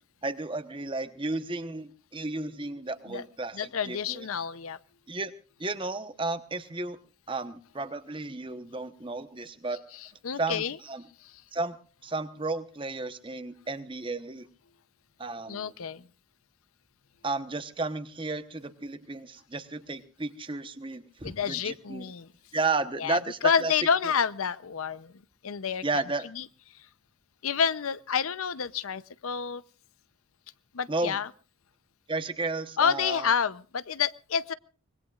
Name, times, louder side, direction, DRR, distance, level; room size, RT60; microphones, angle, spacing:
voice 1, 0.2-4.3 5.1-5.3 5.6-7.0 7.3-9.8 10.4-11.0 11.5-11.8 12.0-14.5 15.2-15.7 17.2-22.1 22.5-23.7 25.8-26.3 30.9-31.2 32.1-33.3, right 3 dB, 25° right, 10 dB, 1.0 m, -33 dB
voice 2, 3.5-4.8 9.9-10.8 15.5-16.1 21.2-22.3 23.0-25.1 25.4-25.8 26.3-26.4 26.8-26.9 27.4-29.6 30.7-31.3 32.8-34.5, left 7 dB, 90° left, 16 dB, 0.7 m, -29 dB
24.5 x 21.0 x 2.4 m, 0.38 s
head